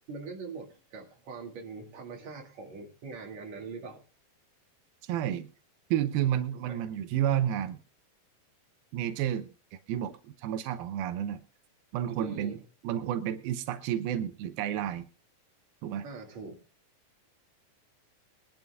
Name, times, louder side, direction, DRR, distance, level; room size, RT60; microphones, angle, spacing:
voice 1, 0.1-4.0 6.6-6.9 12.2-12.6 16.0-16.6, right 4 dB, 50° right, 3.4 m, -42 dB
voice 2, 5.0-5.5 5.9-7.8 8.9-11.4 11.9-12.6 12.8-15.1 15.8-16.0, right 11 dB, 85° right, 2.5 m, -31 dB
22.5 x 11.0 x 2.3 m
omnidirectional pair, 4.1 m